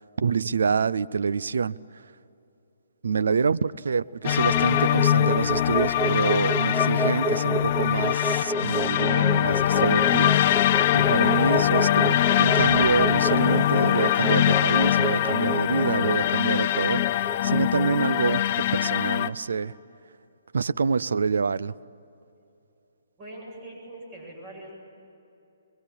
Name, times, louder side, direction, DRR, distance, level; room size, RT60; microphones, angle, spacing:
voice 1, 0.0-2.1 3.0-10.7 10.9-19.8 20.5-21.7, right 5 dB, 70° right, 16 dB, 0.6 m, -26 dB
sound 1, 4.1-18.4, right 2 dB, 10° right, 0.7 m, -31 dB
sound 2, 4.2-19.3, left 12 dB, 40° left, 0.6 m, -22 dB
voice 2, 23.2-24.7, right 1 dB, 35° right, 0 dB, 7.8 m, -42 dB
24.0 x 22.0 x 8.8 m, 2.8 s
figure-of-eight pair, 135°, 0 cm